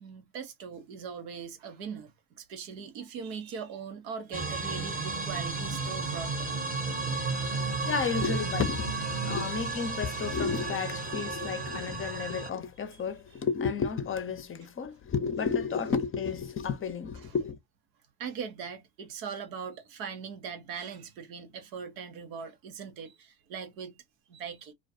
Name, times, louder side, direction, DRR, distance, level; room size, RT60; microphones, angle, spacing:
voice 1, 0.0-6.6 17.2-17.3 18.2-24.0 24.3-24.7, right 6 dB, 90° right, 0.8 m, -40 dB
sound 1, 4.3-12.5, right 4 dB, 15° right, 0.8 m, -33 dB
voice 2, 7.6-17.6, left 6 dB, 25° left, 0.5 m, -32 dB
2.3 x 2.2 x 2.6 m
supercardioid pair, 80°, 49 cm